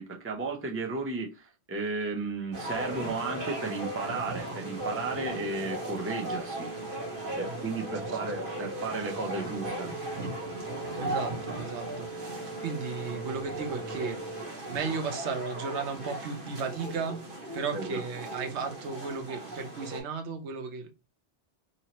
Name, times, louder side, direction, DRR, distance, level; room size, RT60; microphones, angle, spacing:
voice 1, 0.0-6.7 7.3-9.9 17.7-18.0, right 3 dB, 15° right, 0.5 m, -34 dB
sound 1, 2.5-20.0, right 1 dB, 55° right, 1.2 m, -37 dB
voice 2, 8.0-8.3 10.9-14.2 14.7-17.2 17.5-20.9, right 5 dB, 80° right, 1.0 m, -35 dB
2.8 x 2.7 x 2.8 m
omnidirectional pair, 1.1 m